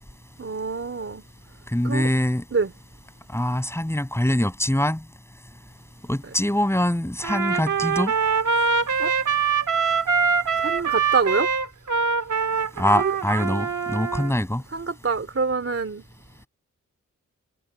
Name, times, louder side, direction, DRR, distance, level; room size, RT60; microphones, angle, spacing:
voice 1, 0.4-1.2 1.8-2.1 2.5-2.7 9.0-9.1 10.6-11.5 13.0-13.1 14.7-16.0, right 4 dB, 45° right, 3.4 m, -26 dB
voice 2, 1.7-2.4 3.3-5.0 6.1-8.1 12.8-14.6, left 1 dB, 10° left, 6.6 m, -23 dB
Trumpet, 7.2-14.3, right 5 dB, 70° right, 2.0 m, -23 dB
wide cardioid pair, 85°, 31 cm